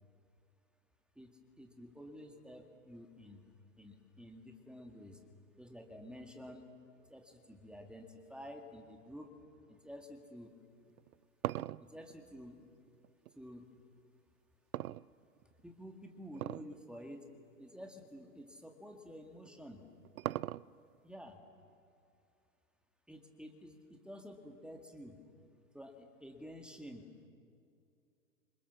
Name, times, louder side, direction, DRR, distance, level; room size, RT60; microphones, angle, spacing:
voice 1, 1.2-3.5 3.8-5.2 5.6-6.7 7.0-9.4 9.7-10.5 11.8-12.6 13.3-13.7 15.4-17.3 17.6-19.9 21.0-21.4 23.1-25.2 25.7-27.3, equal, ahead, 3 dB, 2.1 m, -51 dB
sound 1, 10.9-13.4 14.7-15.6 16.3-16.8 17.1-17.2 18.0-18.1 19.5-21.0, right 14 dB, 70° right, 0.6 m, -40 dB
27.5 x 26.0 x 7.3 m, 2.5 s
hypercardioid pair, 110°, 46 cm